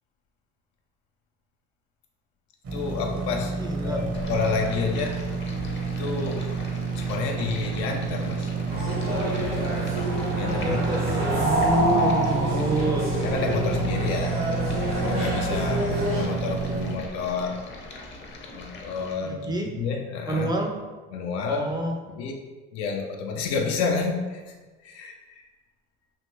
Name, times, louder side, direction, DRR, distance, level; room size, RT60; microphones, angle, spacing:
sound 1, 2.6-17.0, right 5 dB, 50° right, 0.9 m, -30 dB
voice 1, 2.7-5.2 5.9-6.5 7.0-8.5 10.4-10.8 13.2-14.4 15.0-17.6 18.5-20.5 21.1-22.3 22.7-25.5, left 4 dB, 70° left, 2 dB, 0.6 m, -30 dB
voice 2, 3.6-4.0 10.6-13.1 19.2-19.7 20.3-20.7 21.5-22.0, right 2 dB, 15° right, 1 dB, 0.5 m, -27 dB
Stream, 4.1-19.1, left 2 dB, 40° left, 0.8 m, -41 dB
sound 2, 8.7-16.2, equal, 70° right, 1.4 m, -27 dB
3.2 x 2.5 x 3.0 m, 1.3 s
hypercardioid pair, 65°, 30 cm